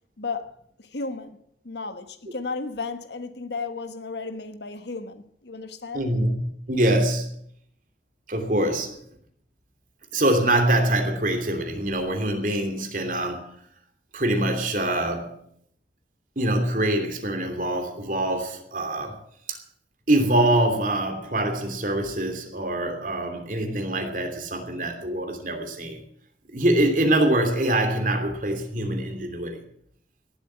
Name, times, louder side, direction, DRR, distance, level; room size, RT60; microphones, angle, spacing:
voice 1, 0.2-0.5 0.8-1.4 1.6-6.2, left 4 dB, 75° left, 1.3 m, -34 dB
voice 2, 5.9-6.4 6.7-7.3 8.3-8.9 10.1-13.6 14.1-15.4 16.4-19.2 19.5-19.6 20.1-26.0 26.5-29.6, right 1 dB, 50° right, 2.9 m, -24 dB
17.5 x 8.0 x 8.7 m
head